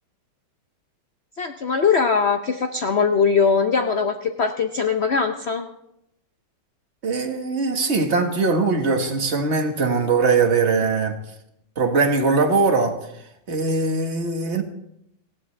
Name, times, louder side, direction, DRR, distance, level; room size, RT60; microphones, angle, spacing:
voice 1, 1.4-5.7, left 5 dB, 90° left, 0.5 m, -21 dB
voice 2, 7.0-11.2 11.8-13.0 13.5-14.6, right 4 dB, 35° right, 1.6 m, -21 dB
18.5 x 15.0 x 3.3 m
omnidirectional pair, 2.3 m